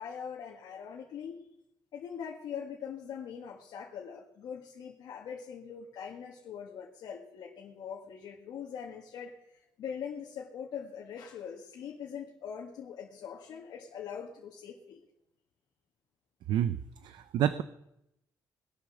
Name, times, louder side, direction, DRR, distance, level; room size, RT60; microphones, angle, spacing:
voice 1, 0.0-1.4 1.9-15.0, left 7 dB, 70° left, -1 dB, 1.9 m, -42 dB
voice 2, 16.5-17.6, right 10 dB, 85° right, 12 dB, 0.6 m, -29 dB
20.0 x 8.5 x 6.4 m, 0.83 s
cardioid pair, 160°, 7 cm